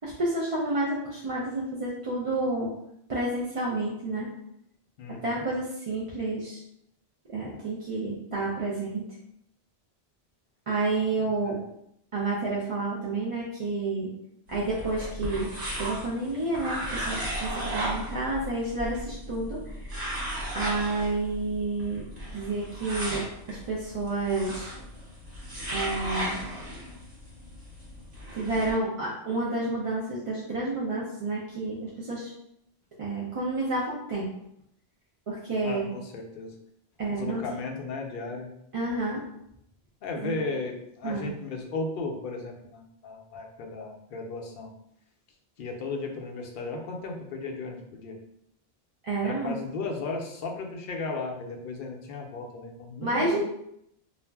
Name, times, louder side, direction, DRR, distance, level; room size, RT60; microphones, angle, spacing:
voice 1, 0.0-2.7 3.1-4.3 5.2-6.6 7.3-9.1 10.7-11.6 12.1-14.1 14.5-15.5 15.8-19.9 20.5-22.0 22.3-24.7 25.7-26.4 28.3-32.3 33.0-34.3 35.3-35.9 37.0-37.4 38.7-39.2 40.2-40.4 41.0-41.3 49.0-49.6 53.0-53.4, right 2 dB, 50° right, -6 dB, 0.4 m, -30 dB
voice 2, 5.0-5.4 11.2-11.6 35.6-36.6 37.1-38.5 40.0-44.7 45.6-48.2 49.2-53.4, left 3 dB, 60° left, 1 dB, 0.7 m, -35 dB
sound 1, 14.5-28.7, right 1 dB, 75° right, 1.1 m, -36 dB
2.4 x 2.0 x 3.3 m, 0.76 s
omnidirectional pair, 1.1 m